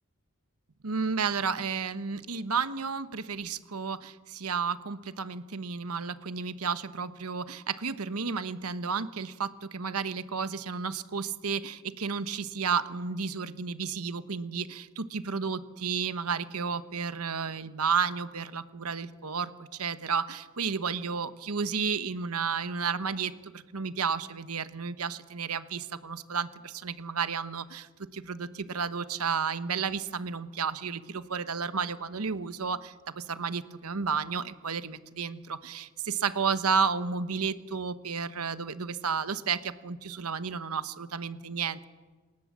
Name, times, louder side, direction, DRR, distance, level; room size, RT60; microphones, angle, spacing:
voice 1, 0.8-41.8, right 5 dB, 85° right, 13 dB, 1.1 m, -32 dB
27.0 x 18.5 x 7.5 m, 1.3 s
head